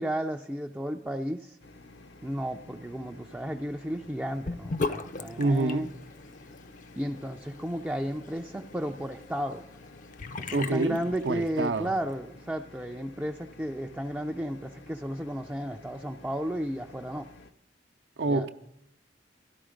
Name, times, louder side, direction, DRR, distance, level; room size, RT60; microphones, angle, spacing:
voice 1, 0.0-1.6 2.2-5.9 7.0-9.6 10.4-17.3 18.3-18.5, equal, 10° right, 0.4 m, -33 dB
sound 1, 1.6-17.5, left 2 dB, 75° left, 0.7 m, -52 dB
Sink (filling or washing) / Bathtub (filling or washing), 4.4-11.8, left 3 dB, 45° left, 0.5 m, -39 dB
voice 2, 5.4-5.9 10.5-11.9 18.2-18.5, right 2 dB, 75° right, 0.6 m, -27 dB
13.0 x 11.5 x 5.0 m
head